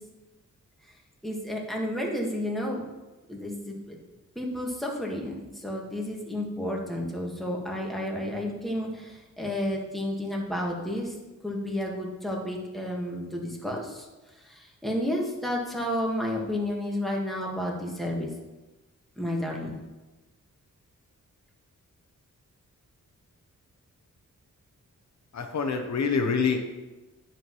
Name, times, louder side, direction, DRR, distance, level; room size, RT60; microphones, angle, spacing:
voice 1, 1.2-2.9 3.3-4.0 4.3-11.1 11.4-14.1 14.4-18.3 19.2-19.7, left 1 dB, ahead, -2 dB, 1.6 m, -31 dB
voice 2, 25.3-26.6, left 5 dB, 60° left, 4 dB, 0.9 m, -26 dB
9.8 x 5.7 x 3.1 m, 1.1 s
wide cardioid pair, 90°, 32 cm